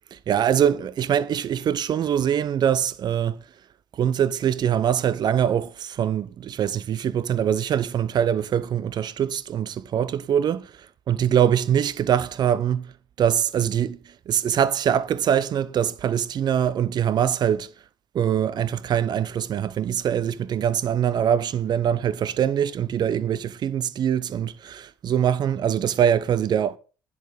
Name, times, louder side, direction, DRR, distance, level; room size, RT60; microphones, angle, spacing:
voice 1, 0.1-3.4 3.9-12.9 13.2-17.7 18.1-26.8, right 9 dB, 45° right, 0.7 m, -23 dB
10.5 x 4.2 x 6.4 m
hypercardioid pair, 55°, 10 cm